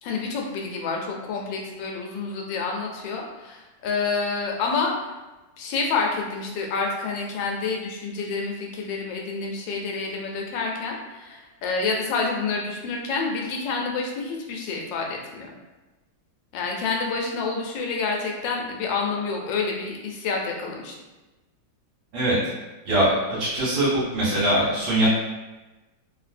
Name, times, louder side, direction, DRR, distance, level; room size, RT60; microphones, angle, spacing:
voice 1, 0.0-4.9 5.6-15.5 16.5-20.9, left 4 dB, 80° left, 0 dB, 1.3 m, -28 dB
voice 2, 22.8-25.1, right 1 dB, 80° right, -8 dB, 1.7 m, -22 dB
3.1 x 2.7 x 2.5 m, 1.1 s
omnidirectional pair, 2.0 m